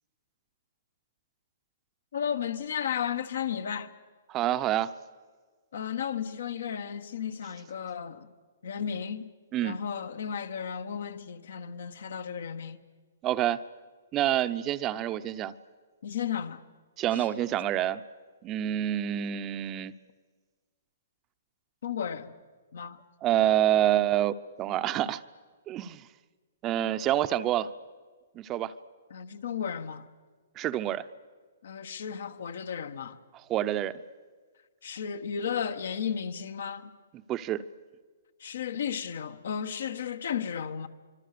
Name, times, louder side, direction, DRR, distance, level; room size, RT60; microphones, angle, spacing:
voice 1, 2.1-3.9 5.7-8.3 8.6-9.3 9.6-12.8 16.0-16.6 17.1-17.2 21.8-22.3 22.7-23.0 29.1-30.1 31.6-33.2 34.8-36.9 38.4-40.9, left 8 dB, 75° left, 1.4 m, -34 dB
voice 2, 4.3-4.9 9.5-9.8 13.2-13.6 14.1-15.5 17.0-18.0 18.4-19.9 23.2-25.2 25.7-26.1 26.6-27.7 28.3-28.7 30.6-31.0 33.5-34.0 37.3-37.6, right 12 dB, 25° right, 0.7 m, -27 dB
25.5 x 24.5 x 6.8 m
hypercardioid pair, 145°, 0 cm